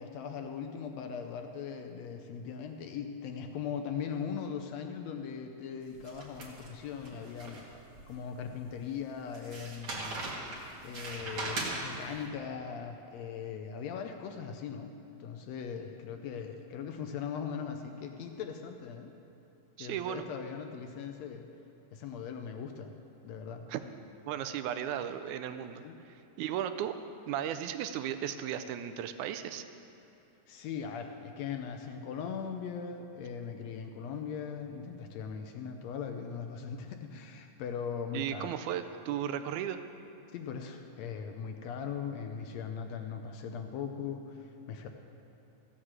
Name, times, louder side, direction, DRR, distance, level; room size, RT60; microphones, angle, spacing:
voice 1, 0.0-7.7 8.1-10.2 10.8-19.1 19.8-21.4 21.9-22.9 23.2-23.7 25.7-26.0 30.5-38.5 40.3-44.9, left 7 dB, 75° left, 5 dB, 1.7 m, -39 dB
sound 1, 6.0-8.0 8.5-8.6 9.3-12.2, right 2 dB, 45° right, 2.4 m, -39 dB
voice 2, 19.8-20.3 23.7-23.8 24.3-27.0 27.3-29.6 38.1-39.8, right 10 dB, 80° right, 10 dB, 1.9 m, -35 dB
15.0 x 6.4 x 7.4 m, 2.9 s
omnidirectional pair, 3.5 m